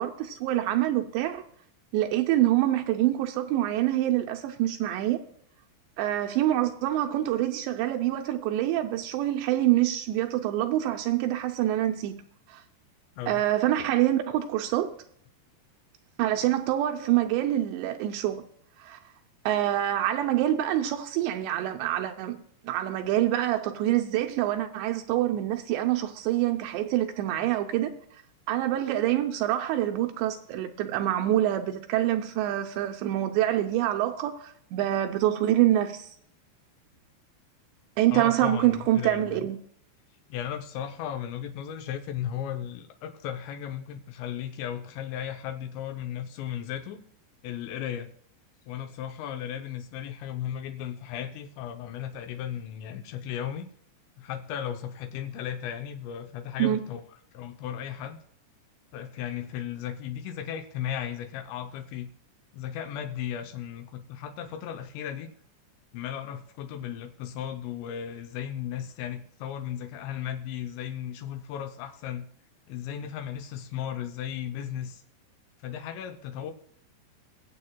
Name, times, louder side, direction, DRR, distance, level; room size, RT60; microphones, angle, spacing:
voice 1, 0.0-1.4 1.9-5.2 6.0-12.2 12.5-12.6 13.3-15.0 16.2-18.4 18.8-19.0 19.5-28.0 28.5-36.1 38.0-39.6 56.6-56.8, right 13 dB, 80° right, 2.7 m, -26 dB
voice 2, 38.1-39.4 40.3-47.0 47.4-48.1 48.7-53.6 54.2-57.0 57.3-58.2 58.9-62.1 62.5-65.3 65.9-72.3 72.7-75.0 75.6-76.5, left 10 dB, 85° left, 3.0 m, -35 dB
22.5 x 7.6 x 2.2 m
omnidirectional pair, 5.1 m